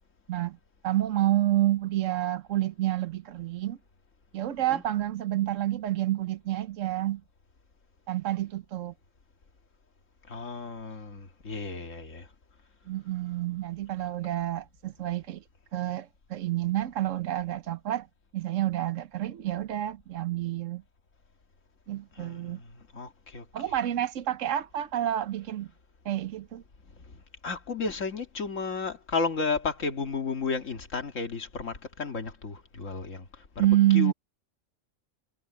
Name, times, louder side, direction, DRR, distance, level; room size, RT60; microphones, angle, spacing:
voice 1, 0.8-3.8 4.3-7.2 8.1-8.9 12.9-15.4 15.7-18.1 18.3-20.8 21.9-22.6 23.5-25.7 26.0-26.6 33.6-34.1, right 13 dB, 80° right, 1.1 m, -28 dB
voice 2, 10.3-12.3 22.2-23.8 27.4-33.3 33.6-34.1, left 4 dB, 80° left, 2.2 m, -33 dB
omnidirectional pair, 1.3 m